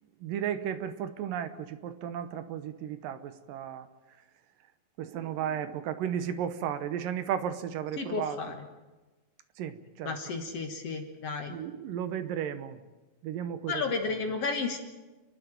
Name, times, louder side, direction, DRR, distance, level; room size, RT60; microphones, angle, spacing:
voice 1, 0.2-3.9 5.0-8.4 9.6-10.1 11.5-12.8 13.2-13.8, right 9 dB, 75° right, 11 dB, 2.6 m, -34 dB
voice 2, 8.0-8.6 10.0-11.5 13.7-14.8, left 4 dB, 50° left, 4 dB, 2.2 m, -32 dB
29.5 x 11.5 x 9.1 m, 1.2 s
omnidirectional pair, 4.1 m